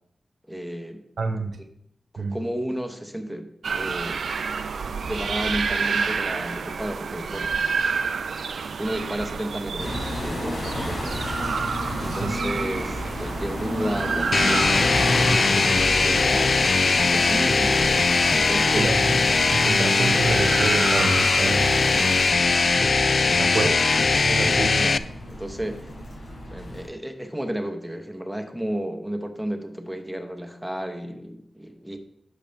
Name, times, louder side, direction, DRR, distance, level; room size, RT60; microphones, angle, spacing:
voice 1, 0.5-1.0 2.1-4.2 5.0-7.5 8.8-11.2 12.0-14.7 15.1-16.5 17.0-18.0 18.3-19.0 24.3-25.0 25.3-25.9 26.5-32.0, right 1 dB, 5° right, 6 dB, 1.0 m, -32 dB
voice 2, 1.2-1.6 2.2-2.4 12.2-12.4 18.8-21.8 23.4-23.8 24.2-24.9, right 4 dB, 65° right, 7 dB, 0.9 m, -28 dB
sound 1, 3.6-22.3, right 5 dB, 85° right, 0.4 m, -30 dB
sound 2, 9.8-26.9, left 1 dB, 90° left, 4.1 m, -33 dB
sound 3, 14.3-25.0, left 4 dB, 50° left, 0.3 m, -20 dB
10.5 x 6.7 x 3.5 m, 0.75 s
wide cardioid pair, 125°, 0 cm